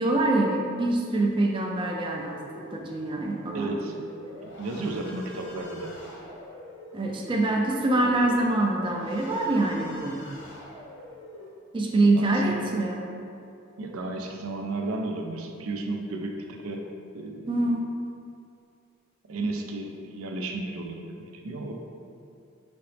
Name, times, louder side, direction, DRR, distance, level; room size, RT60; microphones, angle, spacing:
voice 1, 0.0-4.0 6.9-10.2 11.7-13.0 17.5-17.8, right 2 dB, 25° right, 0 dB, 0.3 m, -25 dB
sound 1, 2.3-11.5, left 1 dB, 60° left, 0.7 m, -45 dB
voice 2, 3.5-3.9 4.6-5.9 12.1-12.7 13.8-16.9 17.1-17.6 19.3-21.7, right 2 dB, 90° right, 2 dB, 0.5 m, -33 dB
5.0 x 2.8 x 3.2 m, 2.5 s
head